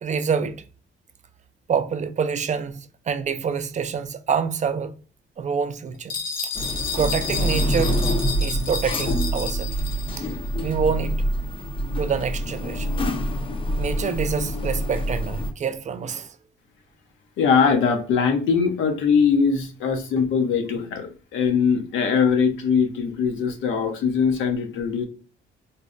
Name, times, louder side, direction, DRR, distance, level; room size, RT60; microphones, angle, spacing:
voice 1, 0.0-0.6 1.7-4.9 5.4-6.1 7.0-8.0 8.4-9.7 10.6-11.2 12.0-12.9 13.8-16.3, right 6 dB, 35° right, 0.4 m, -26 dB
sound 1, 6.1-10.2, left 5 dB, 45° left, 0.8 m, -31 dB
sound 2, 6.5-15.5, equal, 25° left, 0.4 m, -26 dB
voice 2, 17.4-25.1, left 6 dB, 80° left, 0.7 m, -21 dB
4.0 x 2.1 x 2.4 m
cardioid pair, 90°, 20 cm